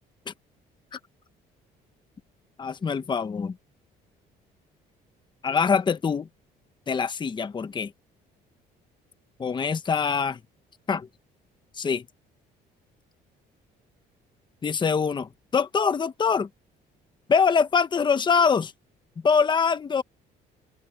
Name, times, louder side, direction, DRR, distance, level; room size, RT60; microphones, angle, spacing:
voice 1, 2.6-3.6 5.4-6.3 6.9-7.9 9.4-10.4 10.9-11.1 11.8-12.0 14.6-16.5 17.3-18.7 19.2-20.0, left 6 dB, 25° left, 1.0 m, -24 dB
open air
cardioid pair, 110°, 17 cm